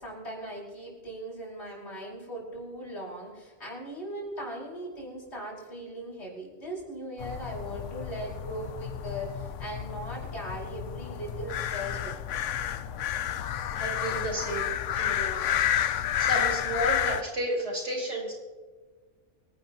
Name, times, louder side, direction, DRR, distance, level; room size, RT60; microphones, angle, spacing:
voice 1, 0.0-12.5, right 1 dB, 60° left, -4 dB, 5.2 m, -39 dB
sound 1, 7.2-17.2, left 10 dB, 80° left, 1.0 m, -31 dB
voice 2, 13.7-15.4 15.7-18.3, right 1 dB, 65° right, -3 dB, 5.0 m, -32 dB
24.0 x 11.5 x 2.9 m, 1.4 s
omnidirectional pair, 1.3 m